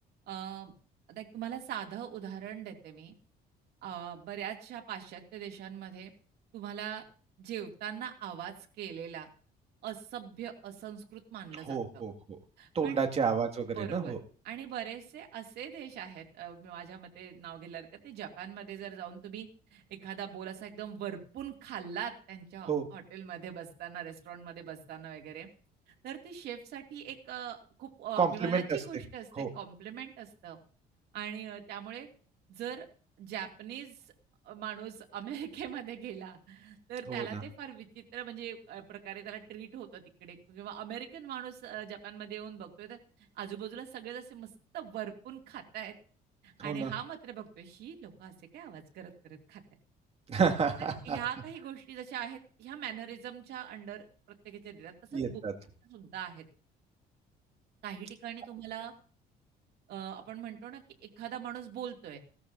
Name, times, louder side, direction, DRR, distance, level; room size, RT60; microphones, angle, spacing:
voice 1, 0.3-0.7 1.1-3.1 3.8-6.1 6.5-7.0 7.4-9.3 9.8-12.0 12.6-13.0 13.7-14.2 14.4-25.5 26.0-30.6 31.1-32.1 32.5-32.9 33.2-34.0 34.4-43.0 43.4-44.5 44.7-45.9 46.4-49.6 50.8-55.4 55.8-56.4 57.8-58.9 59.9-62.2, right 9 dB, 75° right, 2 dB, 2.5 m, -42 dB
voice 2, 11.7-12.1 12.7-14.2 22.7-22.9 28.2-28.8 29.4-29.5 37.1-37.4 46.6-46.9 50.3-51.2 55.1-55.5, right 6 dB, 35° right, 4 dB, 2.1 m, -30 dB
17.5 x 13.5 x 2.7 m, 0.41 s
cardioid pair, 110°, 17 cm